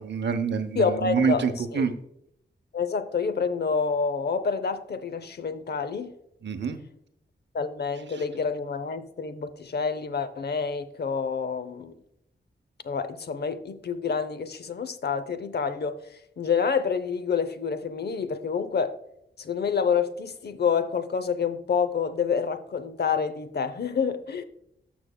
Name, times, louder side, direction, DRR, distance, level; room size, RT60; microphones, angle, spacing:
voice 1, 0.0-1.9 6.4-6.8, right 6 dB, 70° right, 0.8 m, -26 dB
voice 2, 0.7-1.9 2.7-6.1 7.5-11.9 12.8-16.0 16.4-18.9 19.4-24.4, left 6 dB, 60° left, 0.6 m, -28 dB
13.0 x 6.1 x 2.2 m
wide cardioid pair, 140°, 19 cm